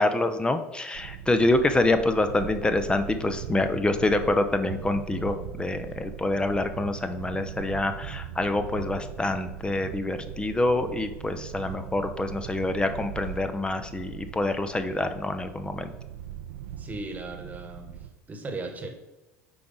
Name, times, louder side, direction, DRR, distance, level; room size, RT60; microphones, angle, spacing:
voice 1, 0.0-15.9, left 2 dB, 10° left, 9 dB, 0.6 m, -26 dB
sound 1, 0.9-18.1, right 10 dB, 65° right, 0.6 m, -40 dB
voice 2, 16.8-18.0 18.3-18.9, right 2 dB, 20° right, 6 dB, 1.3 m, -37 dB
8.5 x 4.7 x 3.9 m, 1.0 s
figure-of-eight pair, 70°, 8 cm